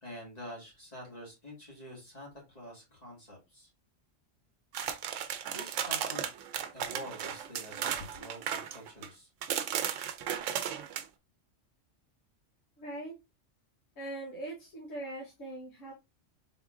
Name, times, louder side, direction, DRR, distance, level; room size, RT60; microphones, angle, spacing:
voice 1, 0.0-3.7 5.5-6.3 6.7-9.3, equal, 30° left, -2 dB, 1.8 m, -46 dB
sound 1, 4.7-9.1 9.4-11.0, right 9 dB, 80° right, 0.9 m, -35 dB
voice 2, 12.8-13.1 14.0-15.9, right 1 dB, 90° left, -3 dB, 1.4 m, -41 dB
4.1 x 3.6 x 2.4 m, 0.24 s
omnidirectional pair, 1.3 m